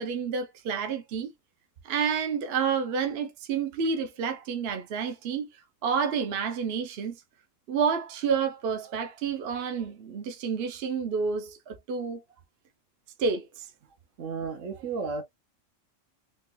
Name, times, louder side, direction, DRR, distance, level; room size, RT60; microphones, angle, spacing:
voice 1, 0.0-1.3 1.8-5.5 5.8-7.2 7.7-12.2 13.2-13.6, right 6 dB, 60° right, 0.8 m, -29 dB
voice 2, 14.2-15.2, right 4 dB, 75° right, 1.2 m, -33 dB
3.7 x 2.2 x 2.6 m
omnidirectional pair, 1.3 m